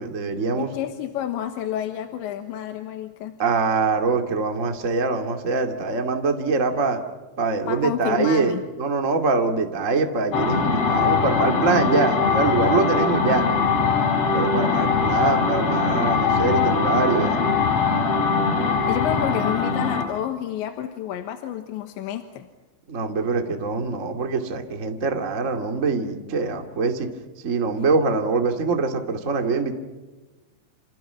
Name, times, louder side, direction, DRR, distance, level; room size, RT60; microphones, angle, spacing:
voice 1, 0.0-0.7 3.4-7.0 7.4-13.4 14.3-17.4 22.9-27.1 27.4-29.7, right 4 dB, 35° right, 4 dB, 1.2 m, -23 dB
voice 2, 0.5-3.4 7.7-8.6 18.9-22.5, left 11 dB, 75° left, 7 dB, 3.4 m, -29 dB
sound 1, 10.3-20.1, left 5 dB, 35° left, 3.8 m, -21 dB
29.0 x 29.0 x 5.8 m, 1.2 s
omnidirectional pair, 5.6 m